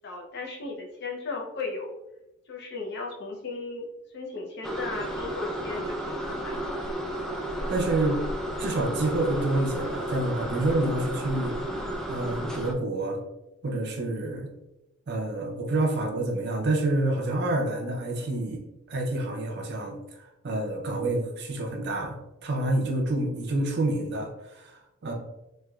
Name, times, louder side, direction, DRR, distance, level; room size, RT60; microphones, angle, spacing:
voice 1, 0.0-2.0 2.5-3.9 4.1-6.6, left 3 dB, 60° left, 1 dB, 0.6 m, -36 dB
sound 1, 4.6-12.7, right 1 dB, 5° left, 0.3 m, -32 dB
voice 2, 7.7-8.2 8.6-11.6 12.1-13.2 13.6-14.5 15.1-20.0 20.4-24.7 25.0-25.1, right 2 dB, 55° right, 1 dB, 0.6 m, -28 dB
3.2 x 3.2 x 2.3 m, 0.93 s
head